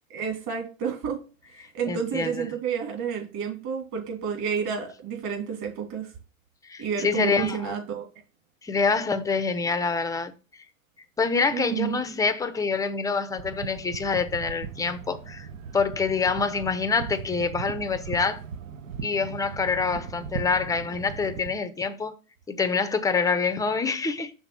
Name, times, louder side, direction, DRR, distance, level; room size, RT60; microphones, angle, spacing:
voice 1, 0.1-1.2 1.7-6.1 6.8-8.1 11.5-12.0, right 7 dB, 45° right, 2.6 m, -30 dB
voice 2, 1.9-2.5 6.7-7.7 8.6-10.3 11.2-15.5 15.7-18.4 19.0-22.1 22.5-24.3, left 4 dB, 10° left, 0.6 m, -26 dB
sound 1, 13.3-21.5, right 7 dB, 70° right, 0.8 m, -38 dB
6.0 x 3.6 x 5.6 m
hypercardioid pair, 85°, 41 cm